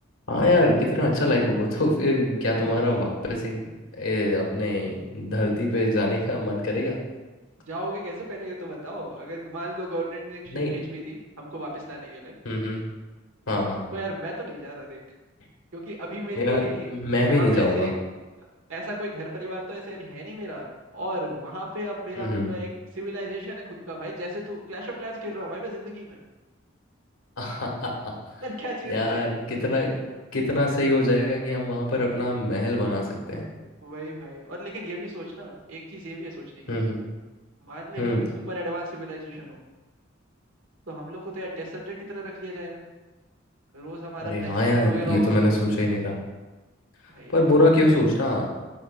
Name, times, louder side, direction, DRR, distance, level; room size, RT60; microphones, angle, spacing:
voice 1, 0.3-3.7 4.0-7.0 10.5-10.7 12.4-12.8 13.5-13.8 16.3-16.6 16.9-17.9 22.1-22.4 27.4-28.1 28.9-29.9 30.3-33.4 36.7-37.0 38.0-38.2 44.2-46.2 47.3-48.5, left 1 dB, 85° left, -1 dB, 1.6 m, -23 dB
voice 2, 2.5-3.0 7.6-12.3 13.9-15.0 15.7-16.9 17.2-17.9 18.7-20.7 20.9-26.2 28.4-29.3 29.8-30.0 33.8-36.7 37.6-38.1 38.5-39.6 40.9-42.8 43.7-45.6 47.1-47.3, right 1 dB, 75° right, -1 dB, 1.5 m, -35 dB
9.8 x 5.2 x 2.4 m, 1.2 s
head